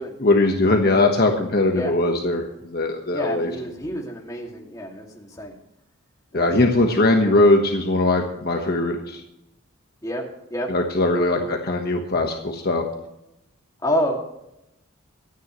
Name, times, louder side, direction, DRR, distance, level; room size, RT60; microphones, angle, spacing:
voice 1, 0.2-3.5 6.3-9.2 10.7-12.8, left 2 dB, 45° left, 2 dB, 1.3 m, -20 dB
voice 2, 3.1-5.5 6.3-6.5 10.0-10.2 10.5-10.7 11.1-11.5 13.8-14.1, equal, 15° left, 0 dB, 2.3 m, -28 dB
24.5 x 9.4 x 3.1 m, 0.85 s
head